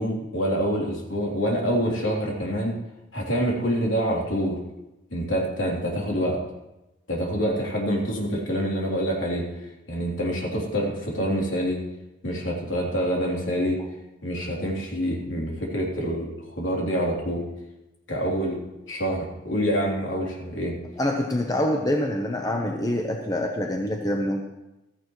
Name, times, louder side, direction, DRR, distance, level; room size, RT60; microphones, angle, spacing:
voice 1, 0.0-2.8 3.1-4.6 5.1-6.4 7.1-9.5 9.9-11.8 12.2-13.8 14.2-16.3 16.5-17.4 18.1-18.6 18.9-20.7, equal, 70° left, -2 dB, 3.3 m, -26 dB
voice 2, 21.0-24.4, left 1 dB, 20° left, 2 dB, 0.9 m, -25 dB
15.5 x 14.0 x 3.1 m, 0.98 s
head